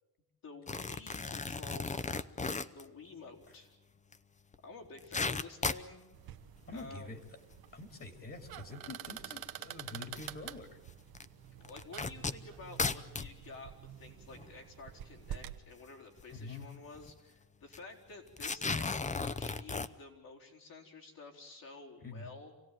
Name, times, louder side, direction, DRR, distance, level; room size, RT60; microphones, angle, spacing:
voice 1, 0.4-2.3 2.7-3.7 4.6-6.0 6.7-7.1 11.6-22.5, left 3 dB, 65° left, 0 dB, 4.3 m, -51 dB
sound 1, 0.7-2.8 4.1-4.2 4.5-4.6 4.9-5.9 6.6-6.9 7.5-7.6 8.7-8.8 10.2-10.3 11.2-11.3 11.6-13.3 14.0-14.1 14.3-14.5 16.2-16.3 16.6-16.7 16.9-17.2 17.7-17.8 18.3-19.9, left 4 dB, 20° left, 0.7 m, -35 dB
sound 2, 6.1-15.6, right 11 dB, 70° right, 1.1 m, -48 dB
voice 2, 6.7-7.2 7.7-10.8 16.3-16.7 22.0-22.3, left 2 dB, 35° left, 7 dB, 2.7 m, -46 dB
26.5 x 17.0 x 9.3 m, 1.1 s
cardioid pair, 105°, 37 cm